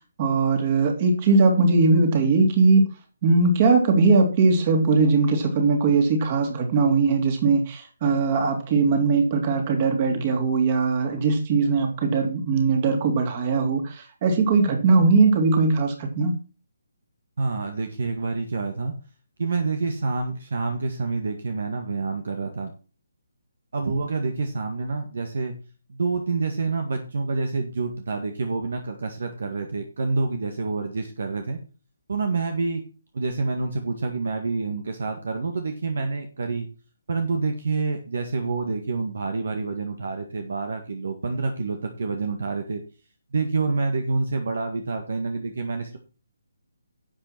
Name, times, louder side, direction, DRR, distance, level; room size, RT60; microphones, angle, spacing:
voice 1, 0.2-2.9 3.2-16.4, right 4 dB, 30° right, 4 dB, 3.3 m, -20 dB
voice 2, 17.4-18.9 19.4-22.7 23.7-25.6 25.9-31.6 32.1-32.8 33.1-36.7 37.1-42.8 43.3-46.0, right 3 dB, 55° right, 6 dB, 1.9 m, -27 dB
11.5 x 8.1 x 4.6 m, 0.35 s
figure-of-eight pair, 140°, 0 cm